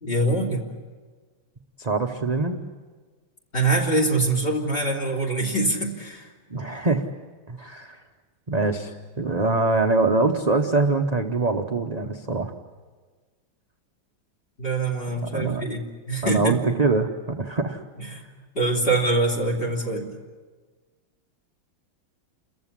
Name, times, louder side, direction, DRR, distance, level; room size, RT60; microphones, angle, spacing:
voice 1, 0.0-0.6 3.5-6.3 14.6-16.6 18.0-18.2 18.5-20.1, right 2 dB, 25° left, -1 dB, 3.3 m, -24 dB
voice 2, 1.8-2.7 6.5-7.0 7.5-8.0 8.5-12.5 15.2-15.6 16.2-17.8, right 3 dB, 35° right, 4 dB, 0.7 m, -24 dB
29.0 x 15.0 x 9.9 m, 1.4 s
omnidirectional pair, 2.2 m